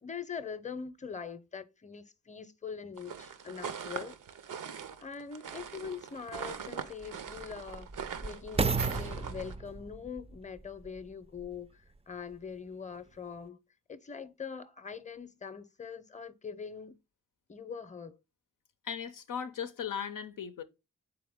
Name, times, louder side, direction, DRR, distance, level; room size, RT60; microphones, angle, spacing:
voice 1, 0.0-4.2 5.0-7.9 8.2-13.6 13.9-17.0 17.5-18.2, left 6 dB, 25° left, 0.6 m, -43 dB
sound 1, 3.0-9.6, right 7 dB, 80° right, 0.6 m, -42 dB
sound 2, 5.6-5.7 6.4-11.7 12.3-12.4, right 4 dB, 20° right, 0.3 m, -35 dB
voice 2, 18.8-20.6, left 7 dB, 85° left, 0.5 m, -37 dB
3.8 x 3.6 x 3.5 m
cardioid pair, 40°, 31 cm